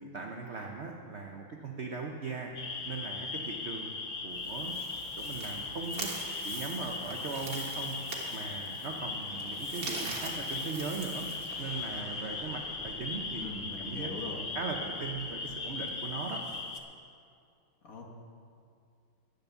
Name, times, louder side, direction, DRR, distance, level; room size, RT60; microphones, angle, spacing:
voice 1, 0.0-2.5 2.8-4.7 5.2-6.1 6.4-7.9 8.3-11.3 11.6-14.1 14.4-16.4, right 4 dB, 65° right, 1 dB, 0.6 m, -39 dB
sound 1, 2.5-16.8, left 4 dB, 60° left, 0.5 m, -38 dB
Aircraft, 3.9-16.5, left 1 dB, 85° left, 3.2 m, -54 dB
sound 2, 4.3-12.0, right 3 dB, 45° right, 1.9 m, -43 dB
voice 2, 13.4-14.4 17.8-18.1, left 3 dB, 45° left, 0 dB, 1.7 m, -41 dB
10.5 x 9.9 x 6.9 m, 2.3 s
omnidirectional pair, 2.3 m